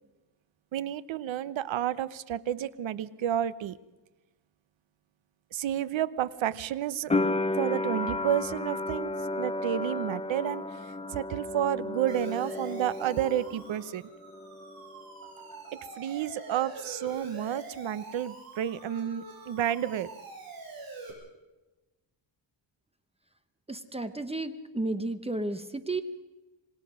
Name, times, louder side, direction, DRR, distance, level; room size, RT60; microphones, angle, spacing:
voice 1, 0.7-3.8 5.5-7.1 7.6-14.1 15.7-20.1, right 11 dB, 75° right, 16 dB, 0.9 m, -31 dB
sound 1, 7.1-13.9 14.2-15.0, left 2 dB, 15° left, 0.7 m, -33 dB
Siren, 12.1-21.1, right 3 dB, 50° right, 7.5 m, -45 dB
voice 2, 23.7-26.0, right 2 dB, 15° right, 10 dB, 0.9 m, -32 dB
26.5 x 19.5 x 6.3 m, 1.1 s
wide cardioid pair, 170°, 46 cm